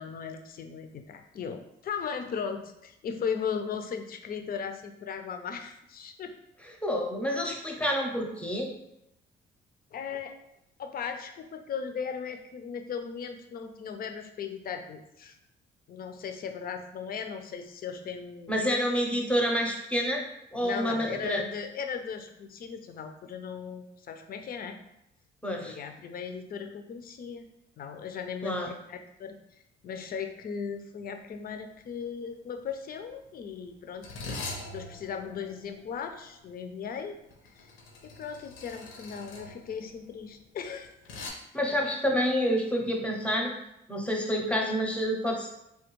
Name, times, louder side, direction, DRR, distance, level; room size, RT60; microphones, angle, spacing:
voice 1, 0.0-6.3 7.5-7.6 9.9-10.4 10.8-15.4 15.9-18.6 20.6-24.8 25.6-27.4 27.8-29.3 29.8-37.2 37.6-37.7 38.0-40.9, left 6 dB, 50° left, 6 dB, 0.4 m, -37 dB
voice 2, 6.8-8.7 18.5-20.2 20.5-21.4 25.4-25.8 28.4-28.7 41.5-43.5 43.9-45.5, equal, 5° left, 1 dB, 0.6 m, -28 dB
sound 1, 31.2-31.4 31.7-32.0 32.8-41.3, left 2 dB, 85° left, 0.6 m, -43 dB
3.3 x 2.2 x 3.0 m, 0.83 s
cardioid pair, 90°, 20 cm